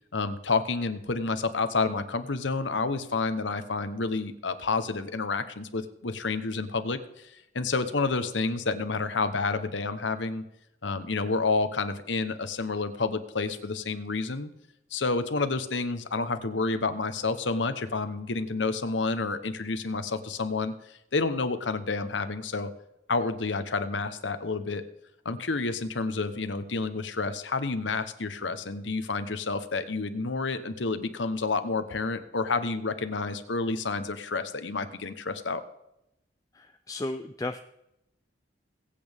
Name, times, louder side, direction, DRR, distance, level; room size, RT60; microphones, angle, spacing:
voice 1, 0.1-10.4 10.8-14.5 14.9-22.7 23.1-24.8 25.2-35.6, left 3 dB, 85° left, 10 dB, 1.1 m, -29 dB
voice 2, 36.5-37.6, left 2 dB, 20° left, 7 dB, 0.4 m, -34 dB
21.0 x 8.6 x 3.6 m, 0.85 s
head